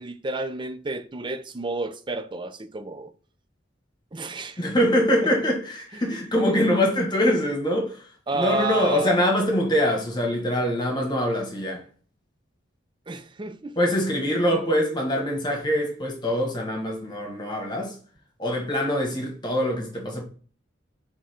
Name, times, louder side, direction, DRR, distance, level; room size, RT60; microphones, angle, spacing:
voice 1, 0.0-3.1 4.1-4.6 5.2-5.3 5.9-6.0 8.3-9.3 13.1-13.8, right 2 dB, 25° right, 0.5 m, -31 dB
voice 2, 4.6-8.0 8.3-11.8 13.8-18.0 18.4-20.2, equal, 25° left, 1.5 m, -24 dB
5.8 x 3.7 x 4.4 m
head